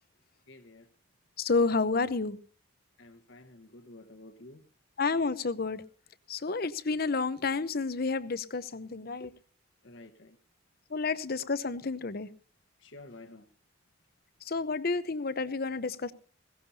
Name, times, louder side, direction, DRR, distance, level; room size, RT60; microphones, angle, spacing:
voice 1, 0.5-0.9 3.0-4.6 9.8-10.4 12.8-13.5, left 2 dB, 70° left, 1.4 m, -51 dB
voice 2, 1.4-2.4 5.0-5.8 6.3-9.3 10.9-12.3 14.5-16.1, left 4 dB, 50° left, 0.8 m, -30 dB
20.5 x 17.0 x 2.8 m
head